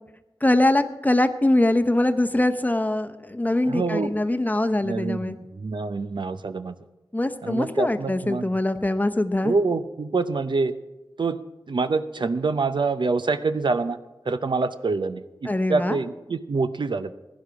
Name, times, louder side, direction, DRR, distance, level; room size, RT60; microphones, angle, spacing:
voice 1, 0.4-5.4 7.1-9.5 15.4-16.0, left 1 dB, 20° left, 9 dB, 0.8 m, -23 dB
voice 2, 3.6-4.1 4.8-6.8 7.4-8.5 9.4-10.7 11.2-11.4 11.7-14.0 14.3-17.1, right 3 dB, 65° right, 11 dB, 0.6 m, -26 dB
16.5 x 10.5 x 4.7 m, 1.0 s
wide cardioid pair, 55°, 9 cm